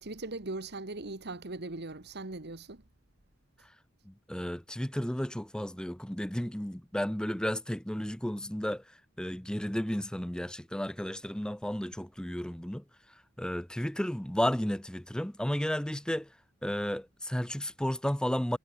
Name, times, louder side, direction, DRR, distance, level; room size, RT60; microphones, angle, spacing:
voice 1, 0.0-2.8, right 2 dB, 55° right, 1.7 m, -39 dB
voice 2, 4.1-8.8 9.2-12.8 13.4-16.3 16.6-18.6, equal, 5° left, 0.7 m, -33 dB
head